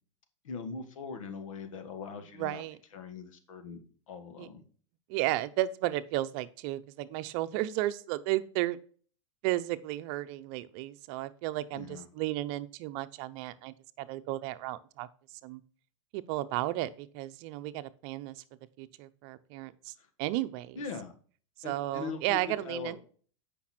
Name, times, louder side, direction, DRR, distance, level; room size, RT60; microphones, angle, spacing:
voice 1, 0.4-2.6 2.9-3.8 4.1-4.6 11.7-12.1 20.0-20.1 20.7-21.1 21.6-23.0, left 5 dB, 85° left, 7 dB, 1.6 m, -41 dB
voice 2, 2.4-2.8 4.4-4.5 5.1-8.8 9.4-15.1 15.4-15.6 16.1-18.4 18.8-19.9 20.2-20.8 21.6-23.0, right 15 dB, 55° right, 12 dB, 0.7 m, -33 dB
8.4 x 5.4 x 4.3 m, 0.43 s
supercardioid pair, 130°, 16 cm